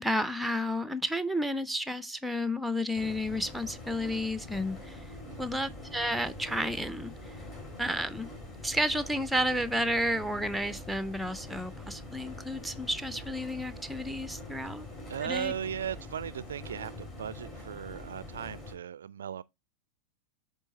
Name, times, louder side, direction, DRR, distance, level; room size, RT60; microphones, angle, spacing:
voice 1, 0.0-5.0 5.4-7.4 7.8-8.3 8.6-14.9 15.2-15.5, equal, ahead, 0.5 m, -31 dB
sound 1, 2.9-18.7, left 1 dB, 25° left, 2.8 m, -44 dB
voice 2, 15.1-19.4, right 8 dB, 65° right, 0.3 m, -37 dB
8.2 x 3.6 x 4.0 m
figure-of-eight pair, 90°, 0 cm